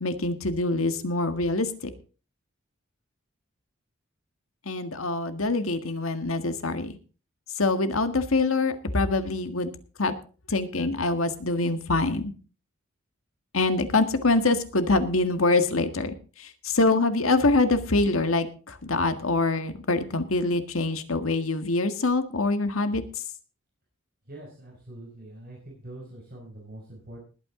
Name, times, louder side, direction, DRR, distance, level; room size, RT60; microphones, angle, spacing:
voice 1, 0.0-1.9 4.7-7.0 7.6-9.7 10.0-10.1 10.5-12.3 13.5-23.0, left 2 dB, 80° left, 9 dB, 1.7 m, -25 dB
voice 2, 24.2-27.2, right 1 dB, 45° right, -2 dB, 4.9 m, -44 dB
20.0 x 9.0 x 3.8 m, 0.37 s
head